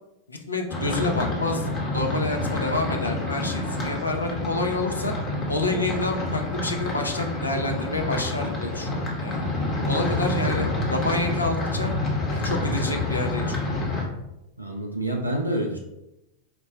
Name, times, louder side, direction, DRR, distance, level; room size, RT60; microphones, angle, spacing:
voice 1, 0.3-5.1 5.5-9.4 9.9-11.9 12.3-13.6, left 2 dB, 80° left, 2 dB, 0.4 m, -28 dB
sound 1, 0.7-14.0, left 2 dB, 25° left, 0.9 m, -28 dB
voice 2, 10.4-10.9 14.6-15.8, right 1 dB, 85° right, 1 dB, 0.3 m, -28 dB
4.4 x 2.0 x 2.7 m, 0.90 s
figure-of-eight pair, 90°, 0 cm